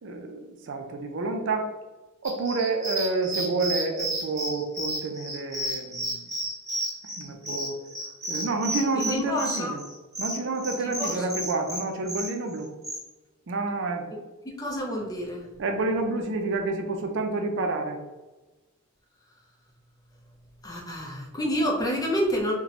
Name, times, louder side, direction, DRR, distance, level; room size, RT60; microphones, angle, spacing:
voice 1, 0.0-1.7 2.2-6.2 7.2-7.8 8.3-9.9 10.2-12.7 13.5-14.1 15.6-18.0, right 3 dB, 60° right, 4 dB, 0.5 m, -29 dB
sound 1, 2.2-13.0, right 1 dB, 15° right, 1.1 m, -32 dB
voice 2, 9.0-9.7 10.8-11.1 14.5-15.4 20.6-22.5, equal, 15° left, -1 dB, 0.6 m, -28 dB
2.9 x 2.2 x 4.0 m, 1.1 s
head